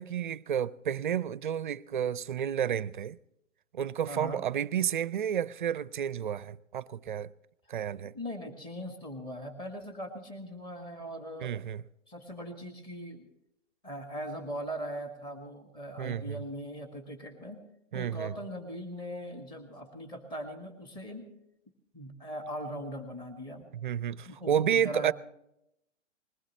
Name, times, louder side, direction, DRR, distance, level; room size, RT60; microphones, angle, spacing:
voice 1, 0.0-3.2 3.7-7.3 7.7-8.1 11.4-11.8 16.0-16.4 17.9-18.3 23.7-25.1, right 9 dB, 40° right, 0.5 m, -31 dB
voice 2, 4.1-4.4 8.0-11.6 12.1-13.3 13.8-17.6 17.9-21.3 21.9-23.7 24.2-25.1, equal, 10° left, 1.8 m, -40 dB
21.0 x 19.0 x 3.1 m
figure-of-eight pair, 130°, 37 cm